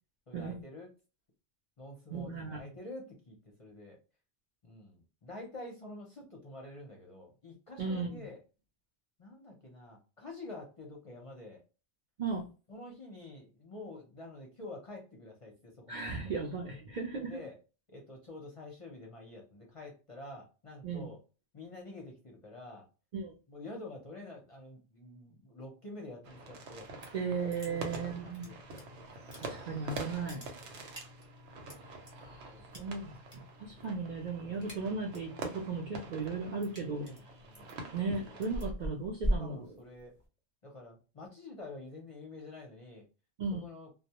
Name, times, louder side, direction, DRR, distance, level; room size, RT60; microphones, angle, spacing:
voice 1, 0.3-0.9 1.8-4.0 4.6-8.4 9.2-11.6 12.7-16.4 17.1-17.6 17.9-21.2 21.5-22.9 23.5-26.9 27.6-28.7 30.7-30.8 32.5-32.8 33.7-33.9 37.0-37.8 38.2-38.5 39.4-40.1 40.6-43.1 43.6-43.9, left 2 dB, 40° left, -1 dB, 0.5 m, -48 dB
voice 2, 2.1-2.6 7.8-8.2 12.2-12.5 15.9-17.4 20.8-21.1 23.1-23.3 27.1-28.5 29.4-30.5 32.2-33.1 33.6-37.1 37.9-39.8 43.4-43.7, right 4 dB, 55° right, 0 dB, 0.6 m, -36 dB
sound 1, 26.2-38.7, right 3 dB, 85° right, 1.0 m, -46 dB
sound 2, 26.7-27.2 27.5-28.8 29.1-29.8 30.1-32.1 32.7-33.4 33.7-34.0 34.3-35.3 35.7-40.3, right 1 dB, 15° right, 0.9 m, -39 dB
2.1 x 2.1 x 2.8 m, 0.32 s
omnidirectional pair, 1.1 m